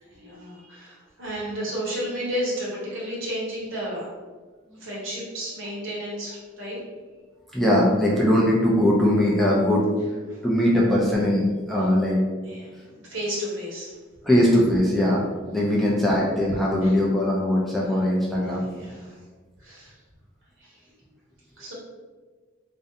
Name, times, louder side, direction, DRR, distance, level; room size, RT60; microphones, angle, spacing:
voice 1, 0.0-4.1 4.8-6.8 10.3-10.4 12.4-13.9 15.7-15.8 16.8-16.9 18.7-19.2 19.6-19.9 20.6-20.8 21.5-21.7, equal, 75° right, -6 dB, 1.0 m, -32 dB
voice 2, 7.5-9.9 10.4-12.2 14.2-15.2 15.5-18.7, left 1 dB, ahead, -5 dB, 0.3 m, -20 dB
2.5 x 2.1 x 2.7 m, 1.4 s
head